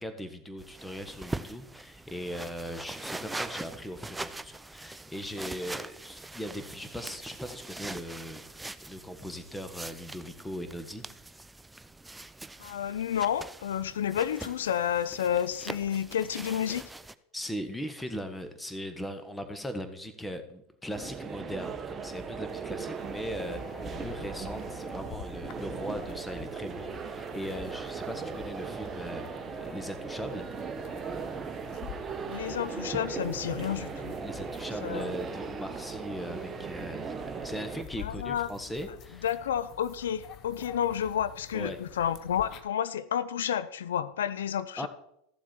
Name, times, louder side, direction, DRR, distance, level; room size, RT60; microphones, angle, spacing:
voice 1, 0.0-8.4 8.9-11.0 17.3-29.3 29.6-30.7 34.2-39.3 41.5-41.8 44.8-44.9, equal, 5° left, 9 dB, 1.4 m, -39 dB
sound 1, 0.6-17.1, right 2 dB, 10° right, 0.5 m, -42 dB
voice 2, 12.6-16.8 32.3-34.2 34.8-35.1 38.0-38.5 39.2-44.9, left 9 dB, 80° left, 15 dB, 0.6 m, -30 dB
sound 2, 20.9-37.8, right 5 dB, 25° right, 1.2 m, -38 dB
sound 3, 23.0-42.6, left 10 dB, 50° left, 0.9 m, -48 dB
14.0 x 7.4 x 4.5 m, 0.76 s
hypercardioid pair, 90°, 0 cm